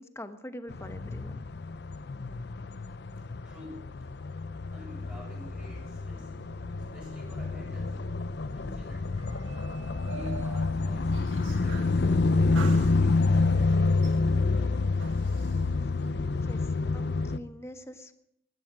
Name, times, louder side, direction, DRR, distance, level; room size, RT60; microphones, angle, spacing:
voice 1, 0.0-1.5 16.4-18.1, equal, 15° left, 9 dB, 1.1 m, -44 dB
sound 1, 0.7-17.4, left 3 dB, 60° left, 0.6 m, -28 dB
voice 2, 3.4-4.1 4.7-6.3 6.7-8.0 8.5-9.1 10.0-11.2 11.6-14.9, left 1 dB, 10° right, -6 dB, 6.6 m, -50 dB
sound 2, 5.1-12.0 12.5-13.5 14.0-15.6, right 4 dB, 85° right, 1.7 m, -47 dB
15.5 x 12.0 x 6.2 m, 0.76 s
head